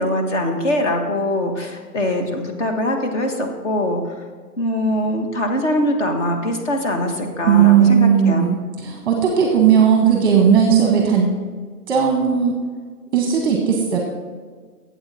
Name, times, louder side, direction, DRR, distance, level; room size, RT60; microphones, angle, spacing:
voice 1, 0.0-4.2 4.6-8.5, left 1 dB, 45° left, 4 dB, 1.5 m, -22 dB
voice 2, 7.4-11.3 11.9-12.6 13.1-14.0, right 8 dB, 15° right, 1 dB, 0.9 m, -16 dB
12.5 x 8.1 x 4.2 m, 1.5 s
hypercardioid pair, 165°, 48 cm